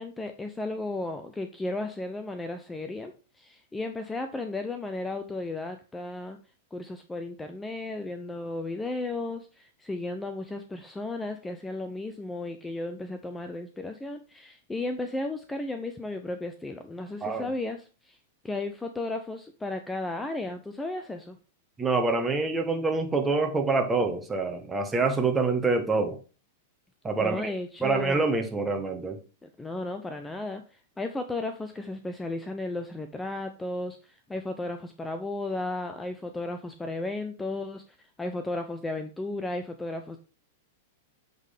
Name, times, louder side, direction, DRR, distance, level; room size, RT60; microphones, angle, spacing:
voice 1, 0.0-3.1 3.4-6.4 6.7-18.2 18.4-21.4 27.2-28.2 29.4-30.6 31.0-37.8 38.2-40.2, left 2 dB, 10° left, 0.6 m, -34 dB
voice 2, 21.8-26.2 27.0-27.5 27.8-29.2, right 3 dB, 15° right, 1.2 m, -26 dB
8.1 x 3.9 x 3.5 m
hypercardioid pair, 105°, 0 cm